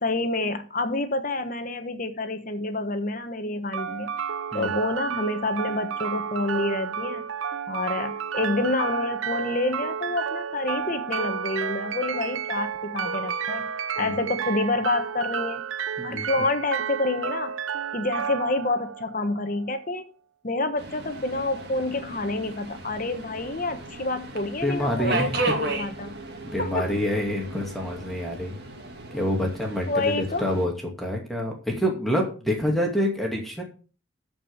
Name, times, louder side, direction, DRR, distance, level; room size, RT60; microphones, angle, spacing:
voice 1, 0.0-4.1 4.5-7.3 7.7-13.7 14.0-15.6 16.0-17.5 17.9-20.0 20.4-26.1 26.6-26.9 29.9-30.5, left 2 dB, 45° left, 8 dB, 1.2 m, -28 dB
sound 1, 3.7-19.7, right 7 dB, 90° right, 0.7 m, -31 dB
voice 2, 16.0-16.5 24.6-25.5 26.5-28.6 29.1-30.7 31.0-33.6, left 1 dB, ahead, 0 dB, 2.4 m, -27 dB
Subway metro underground, 20.8-30.7, right 2 dB, 55° right, 2.3 m, -34 dB
13.5 x 5.4 x 6.7 m, 0.36 s
head